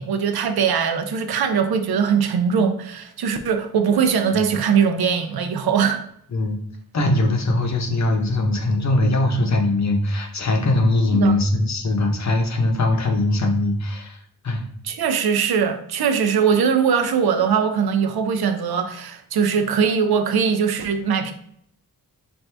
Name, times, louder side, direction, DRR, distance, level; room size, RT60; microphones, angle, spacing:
voice 1, 0.0-6.0 11.1-11.4 14.8-21.3, right 6 dB, 85° right, 0.6 m, -21 dB
voice 2, 6.9-14.2 14.4-14.6, left 2 dB, 50° left, 0.7 m, -21 dB
4.5 x 2.6 x 3.3 m
wide cardioid pair, 155°, 36 cm